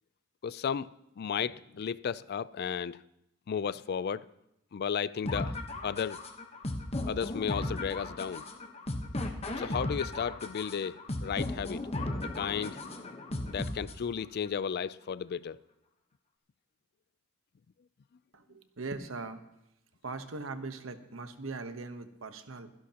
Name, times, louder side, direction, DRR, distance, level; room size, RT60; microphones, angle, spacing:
voice 1, 0.4-3.0 3.5-4.3 4.7-5.5 5.8-6.2 7.1-8.4 9.6-11.8 12.3-12.8 13.4-15.6, left 7 dB, 50° left, 0.4 m, -34 dB
sound 1, 5.3-14.3, left 2 dB, 30° left, 1.1 m, -36 dB
voice 2, 18.3-19.4 20.0-22.7, right 3 dB, 85° right, 1.0 m, -40 dB
23.5 x 11.0 x 2.9 m
head